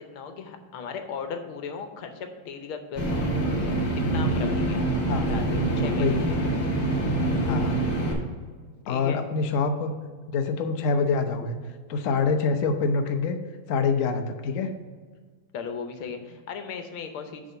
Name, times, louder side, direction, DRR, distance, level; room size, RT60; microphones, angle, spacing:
voice 1, 0.0-3.8 4.1-4.8 5.3-6.4 8.8-9.2 15.5-17.4, left 6 dB, 85° left, 6 dB, 1.7 m, -37 dB
sound 1, 3.0-8.1, right 2 dB, 50° left, 1.8 m, -25 dB
voice 2, 7.4-7.8 8.9-9.9 10.3-11.6 11.9-13.4 13.7-14.7, left 4 dB, 70° left, 6 dB, 0.7 m, -25 dB
7.7 x 3.8 x 6.6 m, 1.5 s
omnidirectional pair, 2.3 m